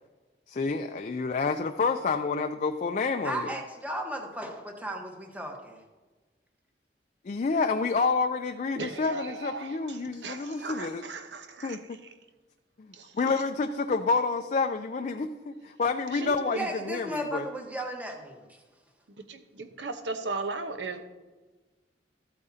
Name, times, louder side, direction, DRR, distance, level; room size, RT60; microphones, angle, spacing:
voice 1, 0.5-3.5 7.2-11.0 11.6-12.0 12.8-17.5, left 4 dB, 40° left, 6 dB, 0.4 m, -29 dB
voice 2, 3.2-5.8 10.4-10.7 16.5-18.6, right 1 dB, 10° right, 2 dB, 1.1 m, -35 dB
voice 3, 8.8-11.8 12.9-13.1 16.1-16.6 19.3-21.0, right 3 dB, 80° right, 8 dB, 0.9 m, -37 dB
13.0 x 8.5 x 2.7 m, 1.2 s
head